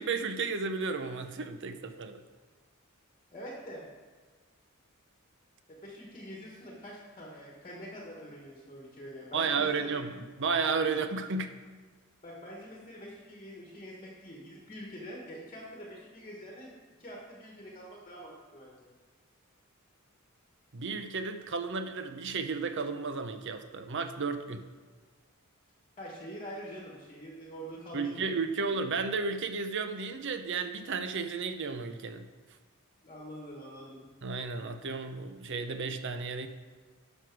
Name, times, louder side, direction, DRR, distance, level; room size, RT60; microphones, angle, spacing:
voice 1, 0.0-2.2 9.3-11.5 20.7-24.7 27.9-32.3 34.2-36.5, right 4 dB, 55° right, 8 dB, 0.7 m, -33 dB
voice 2, 3.3-3.9 5.7-9.9 12.2-16.7 17.0-18.9 26.0-28.3 33.0-34.0, equal, 30° left, -2 dB, 1.3 m, -45 dB
11.0 x 6.2 x 4.7 m, 1.4 s
head